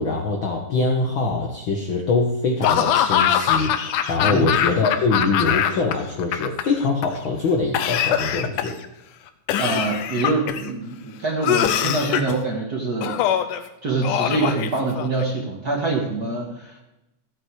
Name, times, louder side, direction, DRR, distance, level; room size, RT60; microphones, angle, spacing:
voice 1, 0.0-8.7, left 3 dB, 60° left, 1 dB, 1.4 m, -23 dB
Laughter / Cough, 2.6-5.9 6.2-7.0 7.7-8.9 9.5-10.7 11.4-12.4 13.0-13.6 14.0-15.2, left 10 dB, 90° left, 2.3 m, -22 dB
voice 2, 9.6-13.2 13.8-16.8, right 3 dB, 40° right, 0 dB, 1.5 m, -25 dB
14.5 x 8.7 x 4.7 m, 0.94 s
omnidirectional pair, 3.6 m